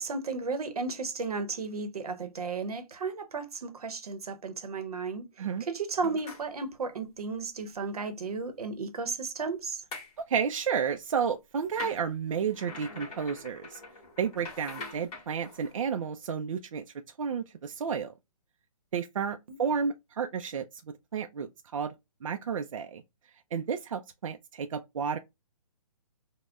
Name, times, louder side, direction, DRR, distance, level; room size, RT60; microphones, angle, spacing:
voice 1, 0.0-5.3 5.6-9.8 19.5-19.6, right 4 dB, 85° right, 0.9 m, -34 dB
sound 1, 6.0-6.4 9.9-10.1 11.7-15.7, left 3 dB, 20° left, 2.1 m, -43 dB
voice 2, 10.3-13.8 14.2-16.8 17.2-18.1 18.9-20.8 21.1-21.9 22.2-23.0 23.5-25.2, right 6 dB, 60° right, 0.4 m, -31 dB
5.3 x 2.1 x 2.4 m
hypercardioid pair, 170°, 19 cm